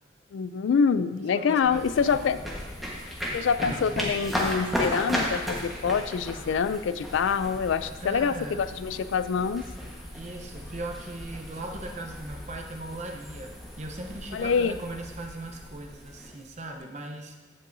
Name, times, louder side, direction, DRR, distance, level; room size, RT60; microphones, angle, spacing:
voice 1, 0.3-2.4 3.3-9.6 14.3-14.7, left 6 dB, 75° left, 13 dB, 0.3 m, -26 dB
voice 2, 1.3-1.8 2.1-2.4 3.6-4.0 8.0-8.6 10.1-17.3, right 2 dB, 35° right, 3 dB, 0.8 m, -39 dB
sound 1, 1.6-16.8, equal, ahead, 1.3 m, -35 dB
15.0 x 5.5 x 2.7 m, 1.2 s
head